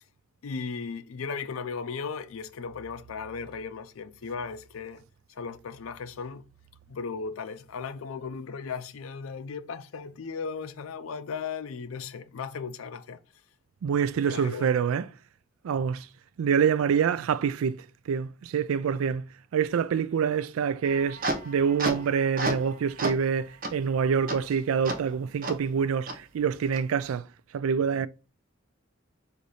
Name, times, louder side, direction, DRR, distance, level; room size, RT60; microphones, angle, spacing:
voice 1, 0.4-5.0 5.3-6.4 6.9-13.2 14.2-14.7, left 5 dB, 85° left, 0.5 m, -36 dB
voice 2, 13.8-15.1 15.6-16.1 16.4-19.2 19.5-27.3 27.5-28.1, right 7 dB, 90° right, 0.3 m, -26 dB
sound 1, 20.8-22.7 23.0-23.3 23.6-23.7 24.3-24.4 24.9-25.0 25.4-25.5 26.1-26.2 26.7-26.8, right 2 dB, 45° right, 0.8 m, -31 dB
4.1 x 2.6 x 4.8 m
head